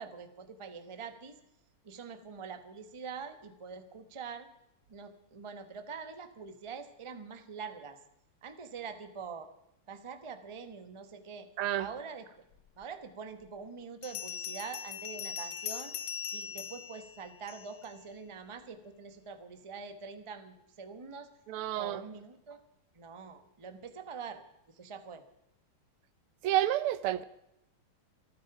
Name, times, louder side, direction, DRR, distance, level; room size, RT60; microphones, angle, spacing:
voice 1, 0.0-1.3 1.8-4.5 4.9-8.0 8.4-9.5 9.9-11.5 11.8-12.4 12.8-15.9 16.3-21.3 21.7-22.6 22.9-24.4 24.7-25.2, right 5 dB, 20° right, 0.8 m, -44 dB
voice 2, 11.6-11.9 21.5-22.0 26.4-27.2, right 13 dB, 80° right, 1.6 m, -29 dB
Bell, 12.8-12.9 14.0-17.9, left 7 dB, 60° left, 1.4 m, -40 dB
28.5 x 9.6 x 4.9 m
omnidirectional pair, 2.4 m